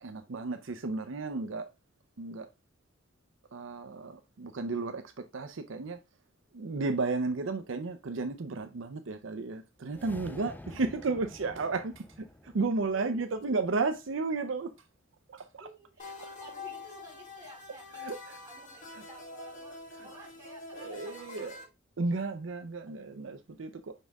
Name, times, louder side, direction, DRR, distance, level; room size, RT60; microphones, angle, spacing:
voice 1, 0.0-1.7 2.2-2.5 3.5-6.0 6.5-14.7 15.3-15.7 17.9-18.4 18.9-19.0 19.9-20.1 20.7-21.6 22.0-23.9, right 3 dB, 70° right, 0.6 m, -33 dB
sound 1, 9.8-14.2, left 1 dB, 10° left, 0.4 m, -49 dB
voice 2, 12.9-13.6 15.6-17.9 18.4-21.7, right 1 dB, 15° right, 3.8 m, -53 dB
sound 2, 16.0-21.6, left 3 dB, 40° left, 1.4 m, -45 dB
5.4 x 5.3 x 3.5 m
head